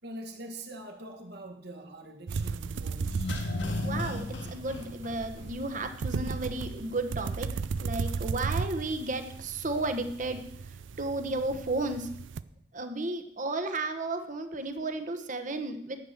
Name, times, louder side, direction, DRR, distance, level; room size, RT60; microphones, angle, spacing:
voice 1, 0.0-3.4, right 1 dB, 60° right, 4 dB, 1.7 m, -44 dB
sound 1, 2.3-12.4, right 5 dB, 80° right, 0.4 m, -36 dB
sound 2, 3.0-5.8 6.1-6.2, left 2 dB, 70° left, 1.6 m, -34 dB
voice 2, 3.8-4.2 4.5-7.5 7.8-10.4 11.0-12.1 12.7-16.0, right 2 dB, 45° right, 7 dB, 1.1 m, -33 dB
10.5 x 7.8 x 6.5 m, 0.72 s
head